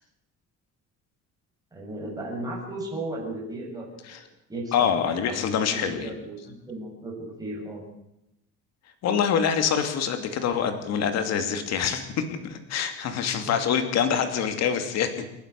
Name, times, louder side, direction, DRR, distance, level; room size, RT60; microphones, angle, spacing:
voice 1, 1.7-4.2 4.5-4.9 5.3-7.8 13.4-13.6, right 2 dB, 10° right, -3 dB, 7.6 m, -35 dB
voice 2, 4.7-6.1 9.0-15.2, left 7 dB, 60° left, 8 dB, 2.7 m, -25 dB
30.0 x 11.5 x 8.3 m, 0.86 s
cardioid pair, 175°, 30 cm